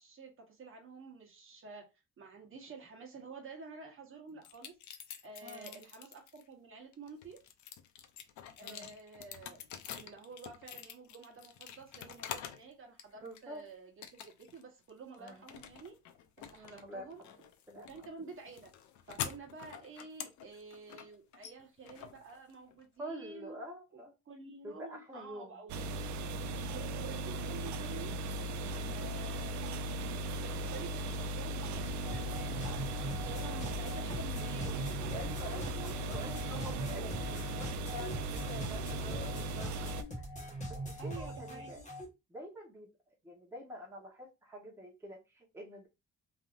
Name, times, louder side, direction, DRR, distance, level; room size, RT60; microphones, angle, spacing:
voice 1, 0.0-1.9 2.2-4.8 5.2-7.4 8.6-9.6 9.9-16.0 16.4-17.2 17.7-18.7 19.1-23.6 23.9-25.9 26.6-28.2 28.9-32.9 33.2-37.2 41.0-41.8, right 4 dB, 45° right, 1.0 m, -50 dB
sound 1, 4.4-6.4 6.9-12.7 13.0-13.6 14.0-14.6 14.9-22.8, left 9 dB, 80° left, 0.6 m, -47 dB
voice 2, 5.4-5.8 8.6-8.9 13.2-13.6 15.2-15.4 16.6-17.1 17.7-17.9 23.0-24.1 24.6-25.5 28.7-29.0 35.1-39.9 40.5-41.8 42.3-42.9 43.2-45.9, equal, 10° right, 0.9 m, -47 dB
sound 2, 25.7-40.0, right 1 dB, 75° right, 0.4 m, -38 dB
sound 3, 31.7-42.0, right 1 dB, 25° left, 1.1 m, -42 dB
3.3 x 2.7 x 2.4 m
cardioid pair, 125°, 29 cm